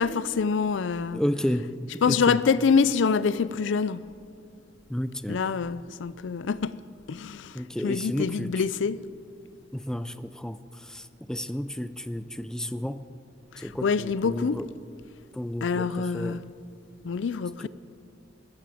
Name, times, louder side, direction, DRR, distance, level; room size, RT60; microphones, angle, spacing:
voice 1, 0.0-1.2 2.0-4.0 5.3-6.8 7.1-7.6 7.8-9.0 13.5-14.6 15.6-16.4 17.0-17.7, left 5 dB, 75° left, 0.4 m, -25 dB
voice 2, 1.1-1.7 2.1-2.4 4.9-5.4 7.5-8.6 9.7-13.0 13.6-14.7 15.3-16.4 17.6-17.7, equal, 5° left, 0.4 m, -32 dB
15.0 x 13.5 x 5.0 m
head